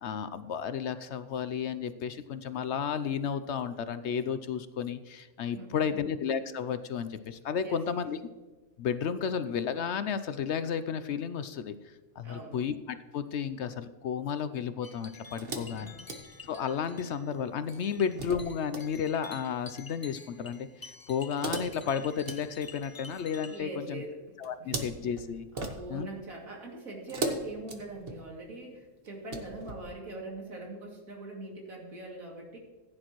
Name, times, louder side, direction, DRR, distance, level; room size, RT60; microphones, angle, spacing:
voice 1, 0.0-8.2 8.8-15.9 16.4-24.0 24.4-25.5 25.9-26.1, left 7 dB, 65° left, 12 dB, 0.8 m, -33 dB
voice 2, 5.5-6.0 7.6-8.0 12.2-12.6 15.6-16.0 23.5-24.2 24.6-24.7 25.5-32.6, right 2 dB, 85° right, -1 dB, 3.0 m, -42 dB
sound 1, 14.8-23.6, left 3 dB, 25° left, 0.5 m, -50 dB
sound 2, 15.4-16.9 17.7-18.9 21.2-23.4 24.4-26.2 27.1-28.4 29.0-29.8, right 2 dB, 45° right, 1.4 m, -39 dB
15.5 x 9.7 x 3.1 m, 1.3 s
omnidirectional pair, 1.4 m